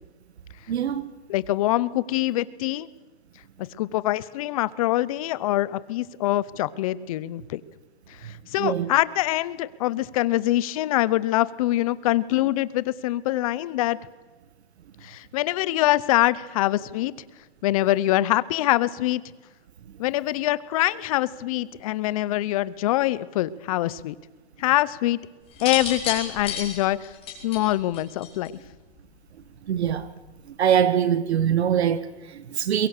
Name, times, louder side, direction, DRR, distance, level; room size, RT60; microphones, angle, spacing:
voice 1, 0.7-1.1 8.6-8.9 29.6-30.1 30.5-32.9, right 9 dB, 85° right, 1.6 m, -23 dB
voice 2, 1.3-2.9 3.8-7.6 8.2-14.0 15.0-17.1 17.6-19.2 20.0-24.1 24.6-25.2 25.6-27.1 27.4-28.5, left 15 dB, 35° left, 0.7 m, -24 dB
sound 1, 25.5-28.7 29.8-30.1, left 7 dB, 15° left, 4.9 m, -32 dB
23.0 x 22.0 x 6.6 m
hypercardioid pair, 160°, 32 cm